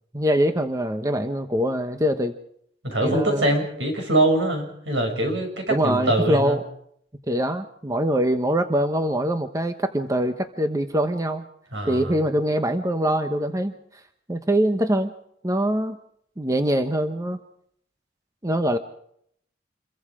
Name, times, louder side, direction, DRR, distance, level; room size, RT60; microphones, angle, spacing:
voice 1, 0.1-2.3 3.0-3.5 5.7-6.6 7.3-11.4 11.8-13.7 14.3-15.1 15.4-16.0 16.4-17.4 18.4-18.8, right 1 dB, 20° right, 8 dB, 0.9 m, -23 dB
voice 2, 2.8-6.6 11.7-12.2, right 1 dB, 80° right, 4 dB, 6.9 m, -23 dB
27.5 x 22.5 x 5.0 m, 0.69 s
head